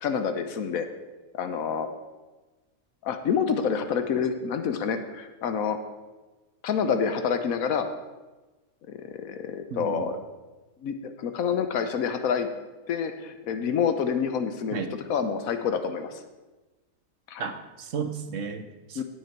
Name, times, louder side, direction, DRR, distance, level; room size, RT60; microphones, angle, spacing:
voice 1, 0.0-0.9 1.3-1.9 3.0-5.8 6.6-7.9 8.9-10.2 10.8-12.5 12.9-14.8 15.1-16.1 17.3-17.5 19.0-19.1, left 6 dB, 85° left, 8 dB, 1.3 m, -27 dB
voice 2, 9.7-10.1 14.7-14.9 17.4-19.0, right 6 dB, 65° right, 8 dB, 1.2 m, -34 dB
17.0 x 6.3 x 4.4 m, 1.2 s
omnidirectional pair, 1.4 m